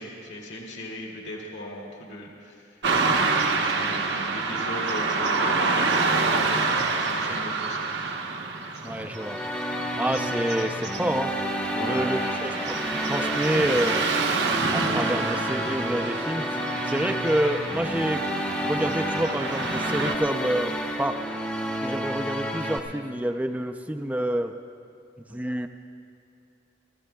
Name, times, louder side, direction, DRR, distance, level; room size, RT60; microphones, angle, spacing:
voice 1, 0.0-2.7 3.1-7.9 11.7-12.1, equal, 65° left, -2 dB, 2.2 m, -38 dB
Car passing by / Traffic noise roadway noise, 2.8-20.1, right 4 dB, 60° right, 0.9 m, -28 dB
voice 2, 8.8-9.4 10.0-11.3 11.8-12.8 13.1-14.1 14.7-16.5 16.8-18.2 18.6-20.7 21.0-21.2 21.8-24.5 25.3-25.7, right 1 dB, 10° right, 7 dB, 0.4 m, -28 dB
sound 1, 9.1-22.8, equal, 10° left, 0.8 m, -30 dB
29.5 x 14.0 x 2.3 m, 2.9 s
head